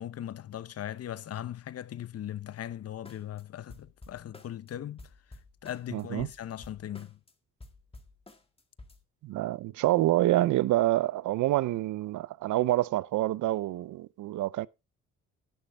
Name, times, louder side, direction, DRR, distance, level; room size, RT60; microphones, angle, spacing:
voice 1, 0.0-7.2, left 11 dB, 55° left, 0.8 m, -39 dB
sound 1, 3.1-3.4 3.7-4.7 5.0-7.3 7.6-9.0, left 2 dB, 20° left, 1.9 m, -51 dB
voice 2, 5.9-6.3 9.2-14.7, right 15 dB, 80° right, 0.6 m, -27 dB
11.5 x 11.5 x 3.4 m
cardioid pair, 90°, 30 cm